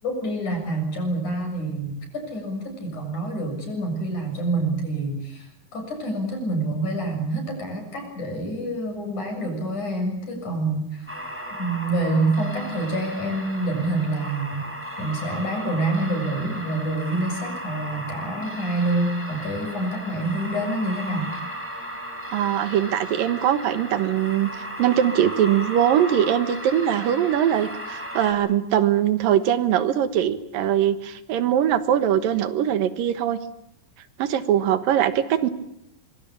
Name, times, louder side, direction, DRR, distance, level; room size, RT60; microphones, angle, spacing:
voice 1, 0.0-11.1 11.6-14.7 15.0-21.3, right 2 dB, 60° left, 3 dB, 8.5 m, -27 dB
sound 1, 11.1-28.3, equal, 5° right, 4.0 m, -35 dB
voice 2, 22.3-33.4 34.2-35.5, right 10 dB, 85° right, 12 dB, 3.1 m, -22 dB
24.5 x 24.0 x 8.7 m, 0.76 s
omnidirectional pair, 3.9 m